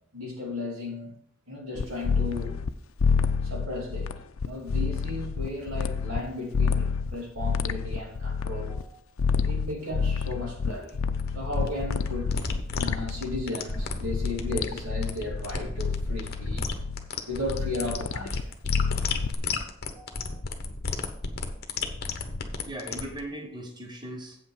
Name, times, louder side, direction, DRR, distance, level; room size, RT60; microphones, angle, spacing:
voice 1, 0.1-1.1 1.5-2.6 3.4-8.8 9.4-11.0 11.3-12.3 12.8-16.7 17.3-18.5, left 2 dB, 75° right, 2.8 m, -35 dB
sound 1, 1.8-2.7 3.0-6.2 6.5-8.8 9.2-13.6 14.0-17.1 17.5-19.3, left 5 dB, 75° left, 0.5 m, -28 dB
voice 2, 8.7-9.0 19.9-20.4 22.6-24.4, right 1 dB, 20° right, 1.0 m, -40 dB
sound 2, 10.9-23.2, left 4 dB, 50° left, 1.1 m, -33 dB
8.2 x 6.0 x 6.3 m
head